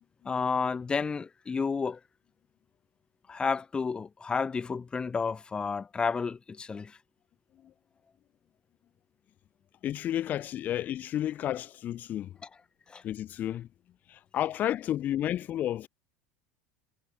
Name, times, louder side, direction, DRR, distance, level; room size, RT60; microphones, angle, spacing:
voice 1, 0.2-2.0 3.3-7.0 12.9-13.0, left 5 dB, 20° left, 7.2 m, -31 dB
voice 2, 9.8-12.3 13.0-13.7 14.1-15.9, left 12 dB, 40° left, 2.8 m, -31 dB
figure-of-eight pair, 75°, 4 cm